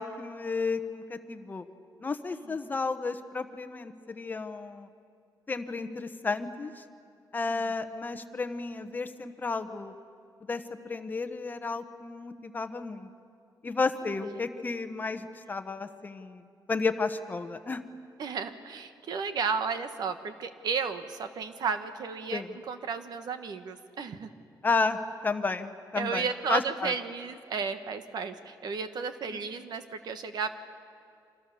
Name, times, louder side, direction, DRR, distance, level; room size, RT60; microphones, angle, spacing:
voice 1, 0.0-1.6 2.0-4.9 5.5-6.8 7.3-9.9 10.5-13.1 13.6-16.4 16.7-17.8 22.3-22.5 24.6-25.0 25.2-26.9 29.3-29.4, left 4 dB, 25° left, 9 dB, 1.0 m, -32 dB
voice 2, 18.2-24.3 25.9-30.5, right 5 dB, 65° right, 9 dB, 1.4 m, -33 dB
29.5 x 26.0 x 7.0 m, 2.3 s
wide cardioid pair, 170°, 8 cm